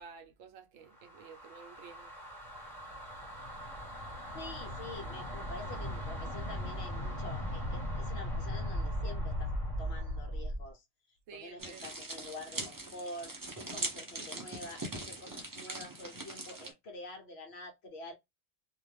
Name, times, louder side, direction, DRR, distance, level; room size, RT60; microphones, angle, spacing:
voice 1, 0.0-2.1 11.3-11.9, right 6 dB, 75° right, 1.0 m, -51 dB
sound 1, 0.9-10.7, equal, 30° left, 1.1 m, -38 dB
voice 2, 4.3-9.5 9.8-10.8 11.3-18.1, left 2 dB, 60° left, 0.9 m, -47 dB
sound 2, 11.6-16.7, right 2 dB, 25° right, 0.4 m, -41 dB
2.5 x 2.2 x 3.2 m
omnidirectional pair, 1.4 m